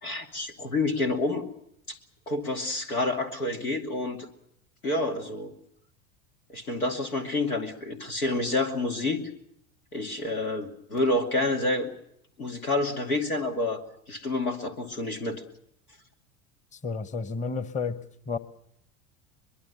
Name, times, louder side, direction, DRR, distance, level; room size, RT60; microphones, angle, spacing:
voice 1, 0.0-1.4 1.9-2.0 2.3-4.3 4.8-5.5 6.5-9.3 9.9-11.9 12.4-13.8 14.1-15.4, left 2 dB, 90° left, 4 dB, 2.6 m, -28 dB
voice 2, 16.7-18.4, left 4 dB, 15° left, 13 dB, 1.1 m, -32 dB
23.0 x 22.0 x 6.9 m, 0.74 s
hypercardioid pair, 80°, 43 cm